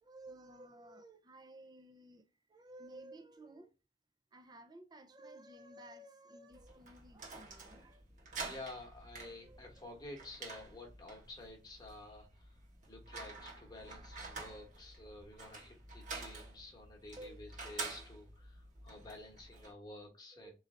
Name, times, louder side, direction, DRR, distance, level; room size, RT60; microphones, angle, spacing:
voice 1, 0.0-3.7 4.3-8.0 9.3-10.0 17.2-17.4 20.3-20.5, right 1 dB, 25° right, 0.5 m, -55 dB
sound 1, 6.5-19.7, right 3 dB, 45° right, 1.2 m, -49 dB
voice 2, 8.4-12.5 12.9-20.5, left 2 dB, 25° left, 1.2 m, -51 dB
3.9 x 3.2 x 3.7 m
head